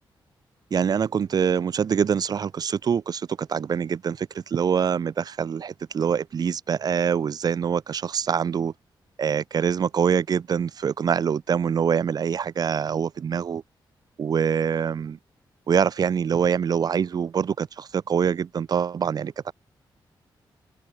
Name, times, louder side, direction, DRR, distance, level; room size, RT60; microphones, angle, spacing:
voice 1, 0.7-8.7 9.2-13.6 14.2-15.2 15.7-19.5, right 7 dB, 50° right, 6.4 m, -24 dB
wide cardioid pair, 170°, 8 cm